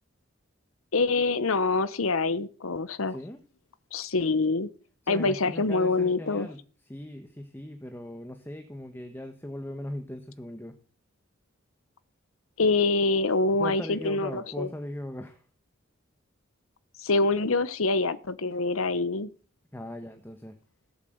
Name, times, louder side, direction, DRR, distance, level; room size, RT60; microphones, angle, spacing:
voice 1, 0.9-3.2 3.9-4.7 5.1-6.5 12.6-14.7 17.0-19.3, left 3 dB, 85° left, 15 dB, 1.0 m, -25 dB
voice 2, 3.1-3.4 5.0-10.8 13.6-15.4 19.7-20.6, left 1 dB, 10° left, 6 dB, 1.2 m, -39 dB
17.5 x 8.3 x 7.9 m, 0.41 s
head